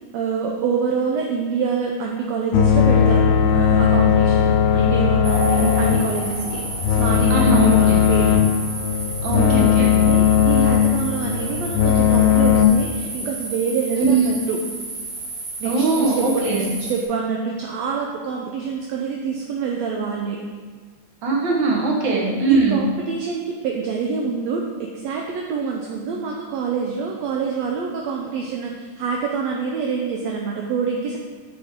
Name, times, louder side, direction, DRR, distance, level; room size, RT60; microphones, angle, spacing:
voice 1, 0.1-8.4 8.9-9.0 9.3-14.6 15.6-20.4 22.5-31.2, right 5 dB, 75° right, 0 dB, 1.7 m, -26 dB
sound 1, 2.5-12.7, left 8 dB, 80° left, 1.7 m, -17 dB
sound 2, 5.2-17.0, right 2 dB, 90° right, 3.1 m, -32 dB
voice 2, 7.3-8.1 9.2-10.0 14.0-14.3 15.6-16.7 21.2-22.8, right 4 dB, 50° right, -1 dB, 1.6 m, -21 dB
9.5 x 6.1 x 3.6 m, 1.5 s
omnidirectional pair, 3.4 m